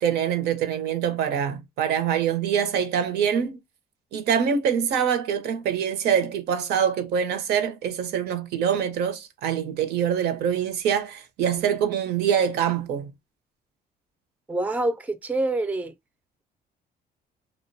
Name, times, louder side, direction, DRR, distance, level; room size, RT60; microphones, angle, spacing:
voice 1, 0.0-3.6 4.1-13.1, right 8 dB, 75° right, 0.6 m, -24 dB
voice 2, 14.5-15.9, right 2 dB, 10° right, 0.4 m, -26 dB
2.5 x 2.1 x 2.5 m
cardioid pair, 110°, 17 cm